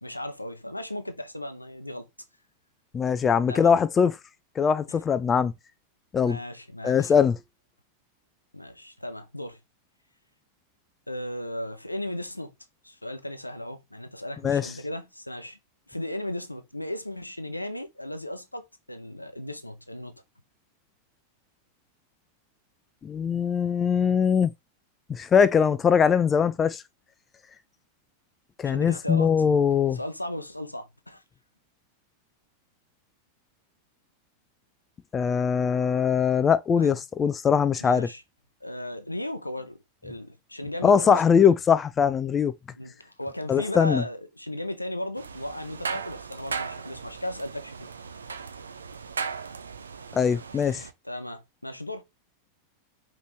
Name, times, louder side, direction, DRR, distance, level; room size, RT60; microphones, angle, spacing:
voice 1, 0.0-2.1 3.5-3.7 4.9-5.0 6.2-7.1 8.5-9.6 11.1-12.5 12.8-15.6 15.9-20.1 28.6-29.3 29.9-31.2 36.8-37.0 37.8-38.2 38.6-41.5 42.8-48.3 51.0-52.0, left 1 dB, 85° left, 0.6 m, -36 dB
voice 2, 2.9-4.1 4.6-5.5 6.1-6.4 6.8-7.4 14.4-14.7 23.0-24.5 25.1-26.8 28.6-30.0 35.1-38.1 40.8-42.5 43.5-44.0 50.1-50.8, left 7 dB, 20° left, 0.3 m, -21 dB
sound 1, 45.2-50.9, right 5 dB, 75° right, 0.4 m, -37 dB
5.1 x 3.0 x 3.0 m
figure-of-eight pair, 90°, 0 cm